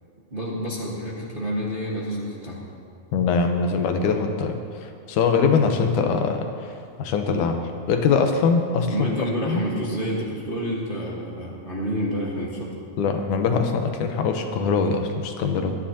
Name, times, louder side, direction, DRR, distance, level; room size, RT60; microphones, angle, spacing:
voice 1, 0.3-2.6 8.9-12.7, equal, 25° right, -5 dB, 1.2 m, -28 dB
voice 2, 3.1-9.1 9.5-9.6 13.0-15.8, left 5 dB, 90° left, 5 dB, 2.4 m, -23 dB
24.5 x 10.0 x 2.9 m, 2.3 s
omnidirectional pair, 3.5 m